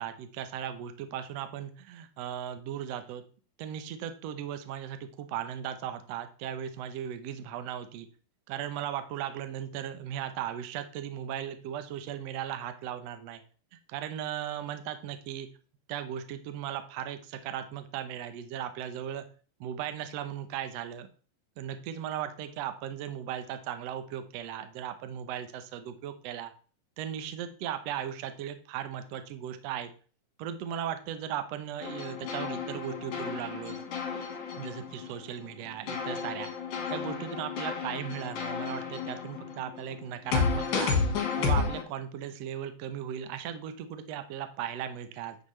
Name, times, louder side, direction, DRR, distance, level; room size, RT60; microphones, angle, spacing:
voice 1, 0.0-3.2 3.6-8.1 8.5-13.4 13.9-15.5 15.9-19.2 19.6-21.1 21.6-26.5 27.0-29.9 30.4-33.8 34.6-36.5 36.9-41.0 41.4-45.4, right 10 dB, 80° right, 9 dB, 1.4 m, -37 dB
sound 1, 31.8-35.5 35.9-41.8, left 5 dB, 65° left, 3.0 m, -32 dB
9.2 x 6.0 x 3.2 m, 0.39 s
omnidirectional pair, 4.1 m